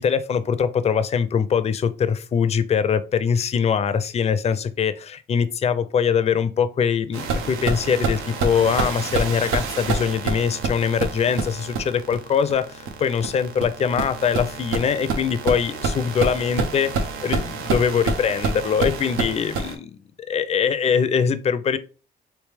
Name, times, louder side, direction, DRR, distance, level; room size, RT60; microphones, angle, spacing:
voice 1, 0.0-16.9 17.2-20.0 20.3-21.8, left 7 dB, 35° left, 0.4 m, -22 dB
sound 1, 7.1-19.7, right 4 dB, 90° right, 0.6 m, -27 dB
3.2 x 2.8 x 3.3 m
cardioid pair, 90°, 20 cm